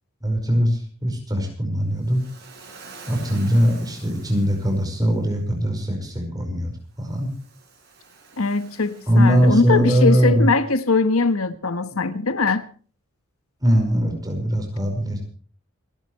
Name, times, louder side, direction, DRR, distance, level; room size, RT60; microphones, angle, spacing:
voice 1, 0.2-2.2 3.1-7.3 9.1-10.5 13.6-15.2, equal, 20° right, 5.3 m, -21 dB
Waves surf, 2.0-5.2 7.0-10.0, right 4 dB, 55° right, 7.2 m, -47 dB
voice 2, 8.4-12.7, left 3 dB, 85° left, 1.3 m, -21 dB
28.5 x 12.5 x 3.2 m
head